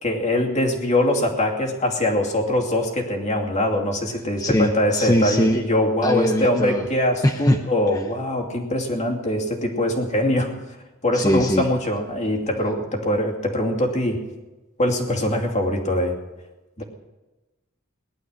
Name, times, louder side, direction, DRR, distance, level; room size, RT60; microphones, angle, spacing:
voice 1, 0.0-10.5 11.0-14.3 14.8-16.2 16.8-16.9, left 1 dB, 35° left, 1 dB, 2.6 m, -22 dB
voice 2, 4.4-5.6 6.0-6.9 7.2-7.6 7.9-8.0 11.1-11.6, left 1 dB, 15° left, 4 dB, 0.9 m, -21 dB
19.0 x 11.5 x 6.5 m, 1.1 s
head